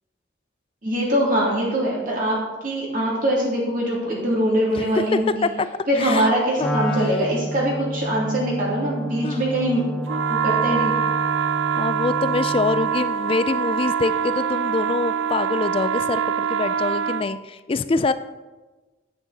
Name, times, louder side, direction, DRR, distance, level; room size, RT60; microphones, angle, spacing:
voice 1, 0.8-2.4 2.6-5.5 5.9-9.8 10.3-11.0, right 1 dB, 45° right, -5 dB, 2.6 m, -22 dB
voice 2, 5.1-5.7 6.0-6.3 6.6-6.8 9.2-9.5 11.8-18.1, left 3 dB, 30° left, 13 dB, 0.3 m, -25 dB
Wind instrument woodwind instrument, 6.6-13.0, equal, 5° left, 0.7 m, -30 dB
sound 1, 10.1-17.3, right 7 dB, 75° right, 0.4 m, -24 dB
9.3 x 8.6 x 4.1 m, 1.2 s
head